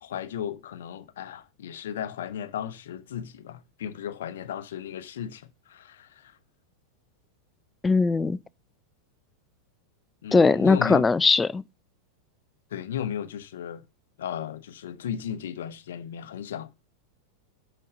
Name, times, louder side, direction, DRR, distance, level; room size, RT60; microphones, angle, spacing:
voice 1, 0.0-6.4 10.2-11.0 12.7-13.8 14.2-16.7, left 9 dB, 60° left, 0.8 m, -35 dB
voice 2, 7.8-8.4 10.3-11.6, left 4 dB, 15° left, 0.3 m, -20 dB
7.9 x 4.4 x 6.2 m
figure-of-eight pair, 90°, 0 cm